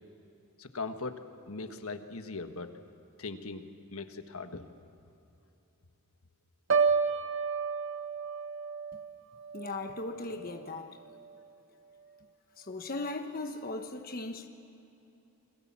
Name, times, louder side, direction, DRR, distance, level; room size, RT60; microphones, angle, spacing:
voice 1, 0.6-1.2 1.5-2.7 3.2-4.6, left 3 dB, 75° left, 1.4 m, -39 dB
Piano, 6.7-10.7 11.0-11.4, right 5 dB, 60° right, 1.2 m, -31 dB
voice 2, 9.5-11.0 12.6-14.5, left 2 dB, 40° left, 1.2 m, -38 dB
29.5 x 22.0 x 7.4 m
head